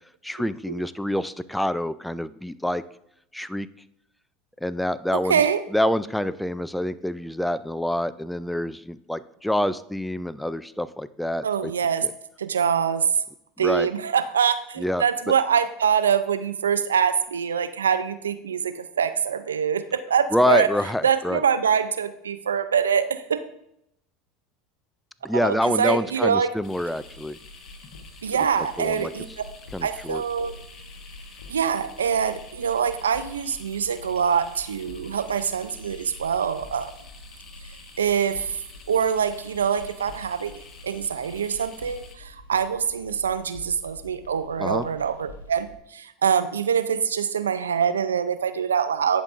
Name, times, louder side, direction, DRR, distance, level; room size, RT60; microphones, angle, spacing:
voice 1, 0.2-2.8 3.3-3.7 4.6-5.4 5.7-11.7 12.0-12.1 13.6-13.9 14.8-15.0 20.3-21.4 25.2-27.4 28.8-29.1 29.7-30.2 44.6-44.8, left 1 dB, 5° left, 14 dB, 0.3 m, -26 dB
voice 2, 5.1-5.6 11.4-12.1 12.4-13.1 13.6-20.7 21.0-23.4 25.3-26.5 28.2-29.4 29.8-30.5 31.5-36.9 38.0-38.6 38.9-40.5 40.8-49.2, right 7 dB, 90° right, 12 dB, 0.4 m, -24 dB
sound 1, 26.5-45.8, left 1 dB, 90° left, 1.0 m, -46 dB
sound 2, 26.6-42.2, left 4 dB, 40° left, 1.2 m, -49 dB
10.5 x 5.2 x 2.5 m, 0.78 s
hypercardioid pair, 85°, 0 cm